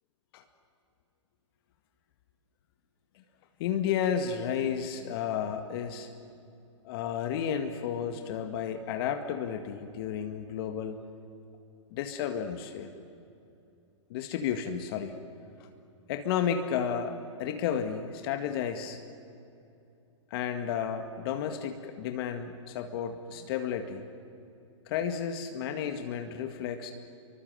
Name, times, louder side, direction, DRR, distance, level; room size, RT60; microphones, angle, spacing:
voice 1, 3.6-6.1 6.8-11.0 11.9-12.9 14.1-15.1 16.1-19.0 20.3-24.0 24.9-26.9, left 8 dB, 50° left, 7 dB, 1.9 m, -32 dB
26.5 x 23.5 x 7.8 m, 2.7 s
hypercardioid pair, 120°, 16 cm